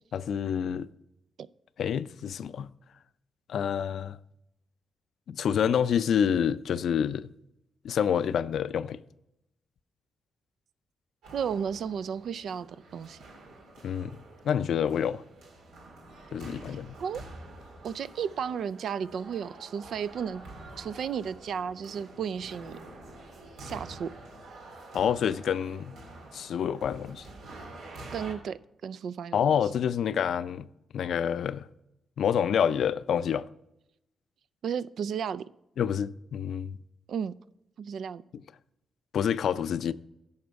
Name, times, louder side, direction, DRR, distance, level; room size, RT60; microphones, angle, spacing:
voice 1, 0.1-0.9 1.8-2.7 3.5-4.2 5.3-7.3 7.8-9.0 13.8-14.2 14.4-15.2 16.3-17.0 24.9-26.0 26.3-27.3 29.3-30.7 30.9-31.7 32.2-33.5 35.8-36.8 39.1-39.9, left 8 dB, 70° left, 0.4 m, -27 dB
sound 1, 11.2-28.4, right 2 dB, 90° right, 2.4 m, -47 dB
voice 2, 11.3-12.7 12.9-13.2 17.0-17.2 17.8-20.4 20.8-22.8 23.6-24.1 28.1-29.6 34.6-35.5 37.1-37.3 37.8-38.2, right 7 dB, 70° right, 0.4 m, -33 dB
11.0 x 7.2 x 4.6 m
cardioid pair, 85°, 0 cm